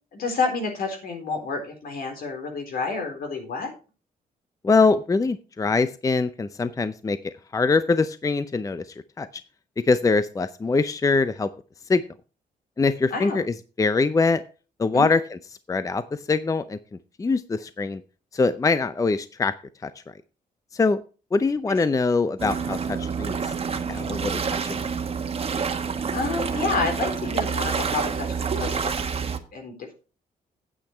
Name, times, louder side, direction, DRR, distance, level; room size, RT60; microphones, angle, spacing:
voice 1, 0.1-3.7 13.1-13.4 14.9-15.1 21.7-21.8 26.1-29.1 29.5-29.9, left 4 dB, 70° left, 4 dB, 4.0 m, -29 dB
voice 2, 4.6-8.8 9.2-9.3 9.9-11.5 11.9-12.0 12.8-14.4 14.8-15.4 15.7-16.0 16.3-16.8 17.2-18.0 18.3-19.5 19.8-19.9 20.7-21.0 21.3-23.4 23.9-24.8, left 4 dB, 20° left, 13 dB, 0.6 m, -23 dB
sound 1, 22.4-29.4, right 6 dB, 40° right, 1.3 m, -28 dB
9.1 x 8.7 x 4.5 m, 0.34 s
cardioid pair, 120°, 16 cm